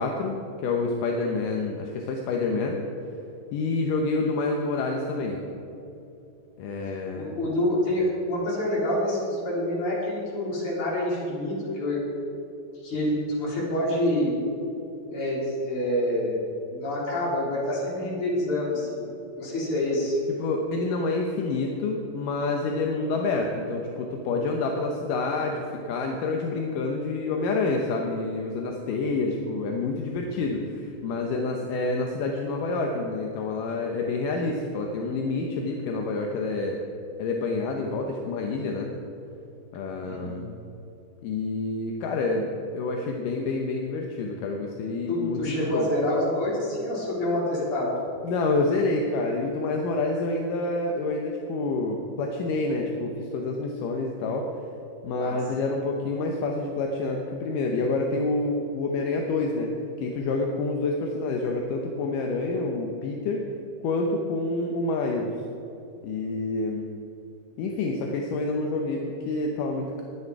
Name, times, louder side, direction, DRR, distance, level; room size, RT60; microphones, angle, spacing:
voice 1, 0.0-2.8 3.5-5.4 6.6-7.3 20.3-36.8 37.2-38.9 39.7-40.5 41.2-42.5 42.7-45.9 48.2-54.5 55.0-59.7 60.0-63.5 63.8-65.3 66.0-66.9 67.6-70.0, left 3 dB, 70° left, 1 dB, 2.1 m, -28 dB
voice 2, 7.1-12.0 12.8-14.4 15.1-16.4 16.6-19.1 19.4-20.2 40.0-40.4 45.1-47.9 55.2-55.4, left 1 dB, 35° left, -5 dB, 4.3 m, -27 dB
21.5 x 9.5 x 4.8 m, 2.9 s
omnidirectional pair, 4.8 m